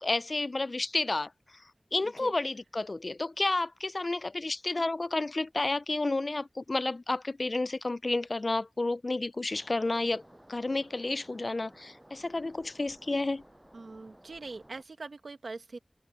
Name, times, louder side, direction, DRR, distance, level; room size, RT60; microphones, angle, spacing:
voice 1, 0.0-1.3 1.9-10.2 10.5-13.4, left 2 dB, 50° left, 0.4 m, -31 dB
Waves surf, 9.5-14.8, right 1 dB, 10° right, 7.8 m, -56 dB
voice 2, 13.7-15.8, right 3 dB, 85° right, 1.5 m, -42 dB
open air
wide cardioid pair, 70°, 0 cm